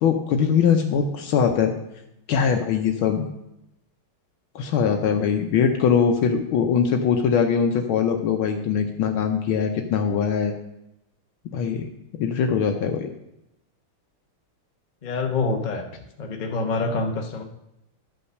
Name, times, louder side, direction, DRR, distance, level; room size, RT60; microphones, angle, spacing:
voice 1, 0.0-1.7 2.3-3.3 4.5-10.5 11.5-11.9 12.2-13.1, left 7 dB, 75° left, 4 dB, 1.6 m, -22 dB
voice 2, 15.0-15.8 16.2-17.4, left 3 dB, 30° left, 3 dB, 0.9 m, -26 dB
12.0 x 5.5 x 6.5 m, 0.85 s
omnidirectional pair, 2.3 m